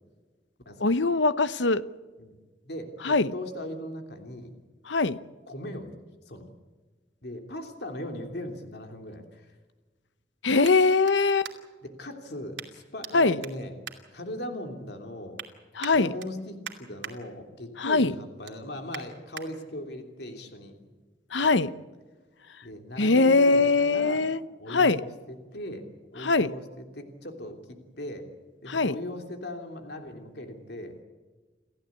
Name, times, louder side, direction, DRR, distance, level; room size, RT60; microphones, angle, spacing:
voice 1, 0.8-1.8 3.0-3.3 4.9-5.2 10.4-11.5 13.1-13.4 15.8-16.1 17.8-18.1 21.3-21.7 23.0-24.4 24.7-25.0 26.2-26.5 28.7-28.9, left 3 dB, 80° left, 15 dB, 0.9 m, -22 dB
voice 2, 2.6-4.5 5.5-6.0 6.3-6.5 7.2-9.5 11.8-13.8 14.1-15.4 15.8-20.9 21.4-21.6 22.6-24.2 24.6-28.3 28.6-31.0, left 1 dB, 60° left, 4 dB, 3.1 m, -39 dB
sound 1, 9.6-11.9 12.5-13.1 13.4-14.7 15.1-15.5 15.8-17.1 17.6-17.8 18.2-19.5 20.0-20.1, right 8 dB, 80° right, 2.6 m, -44 dB
29.0 x 14.5 x 8.5 m, 1.3 s
head